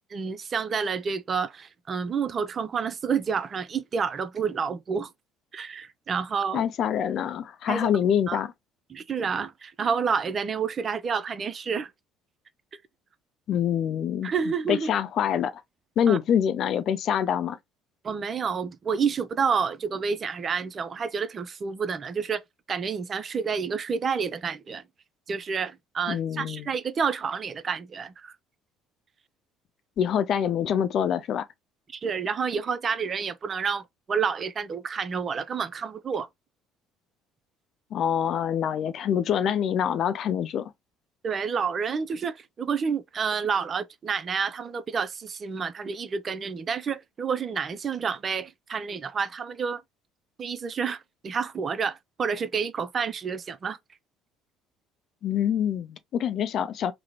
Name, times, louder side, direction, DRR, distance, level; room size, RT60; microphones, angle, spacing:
voice 1, 0.1-5.1 5.5-6.7 7.7-7.9 8.3-8.4 8.9-11.9 14.2-14.9 16.1-16.2 18.0-22.4 22.7-24.8 25.3-28.3 31.9-36.3 41.2-49.8 50.4-53.8, right 6 dB, 35° right, 0.4 m, -29 dB
voice 2, 6.5-8.5 13.5-14.3 14.7-15.6 16.0-17.6 26.1-26.7 30.0-31.5 37.9-40.7 55.2-56.9, left 9 dB, 45° left, 0.4 m, -25 dB
3.5 x 2.1 x 2.9 m
figure-of-eight pair, 55°, 0 cm